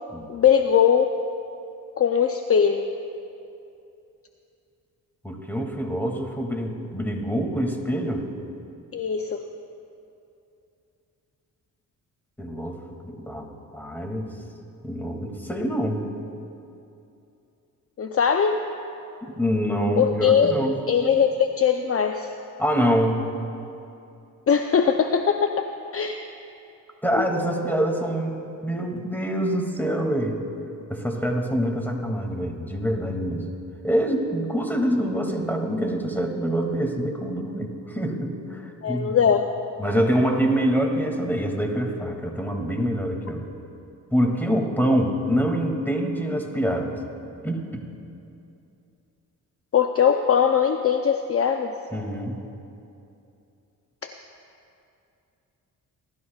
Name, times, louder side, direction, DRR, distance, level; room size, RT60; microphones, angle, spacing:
voice 1, 0.3-1.1 2.0-2.8 8.9-9.4 18.0-18.6 20.0-20.5 20.9-22.3 24.5-25.6 25.9-26.2 27.2-27.3 38.8-39.5 49.7-51.7 54.0-54.1, left 7 dB, 40° left, 6 dB, 0.6 m, -20 dB
voice 2, 5.2-8.2 12.4-12.8 13.1-13.5 13.7-14.3 14.8-16.0 19.2-20.8 22.6-23.3 27.0-30.4 30.9-33.4 33.8-39.2 39.8-43.4 44.1-47.0 47.4-47.8 51.9-52.4, equal, 5° left, 1 dB, 2.3 m, -25 dB
29.0 x 12.5 x 2.4 m, 2.7 s
cardioid pair, 65°, 35 cm